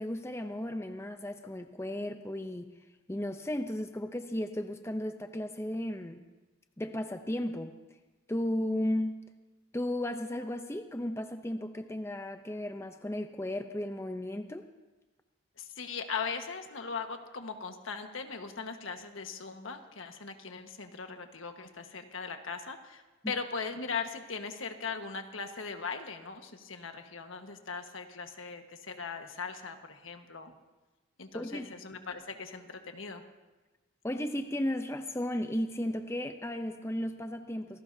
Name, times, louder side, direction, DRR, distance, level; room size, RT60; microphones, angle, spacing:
voice 1, 0.0-2.7 3.1-6.2 6.8-7.8 8.3-9.2 9.7-14.7 31.3-31.7 34.0-37.8, left 1 dB, 15° left, 7 dB, 0.6 m, -34 dB
voice 2, 15.6-30.5 31.2-33.2, left 5 dB, 85° left, 5 dB, 1.4 m, -39 dB
26.0 x 17.5 x 2.8 m, 1.2 s
head